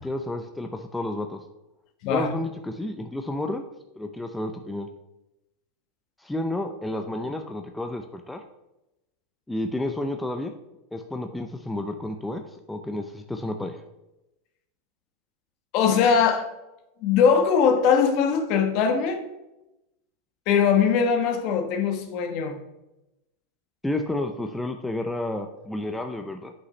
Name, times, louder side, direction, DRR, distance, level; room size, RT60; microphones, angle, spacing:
voice 1, 0.0-1.4 2.1-3.6 4.0-4.9 6.2-8.4 9.5-10.5 10.9-12.4 12.7-13.8 23.8-26.5, left 1 dB, 5° left, 5 dB, 0.5 m, -31 dB
voice 2, 15.7-16.5 17.0-19.3 20.5-22.5, left 6 dB, 50° left, 6 dB, 1.1 m, -21 dB
7.9 x 5.6 x 3.2 m, 0.94 s
supercardioid pair, 130°, 0 cm